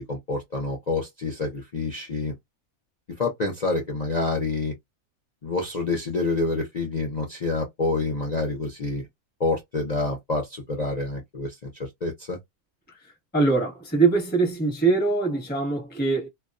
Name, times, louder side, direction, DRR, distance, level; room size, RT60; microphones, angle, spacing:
voice 1, 0.0-2.3 3.2-4.7 5.4-9.1 9.4-12.4, left 3 dB, 55° left, 0.4 m, -27 dB
voice 2, 13.3-16.3, right 4 dB, 10° left, 0.8 m, -22 dB
2.3 x 2.2 x 2.4 m
omnidirectional pair, 1.6 m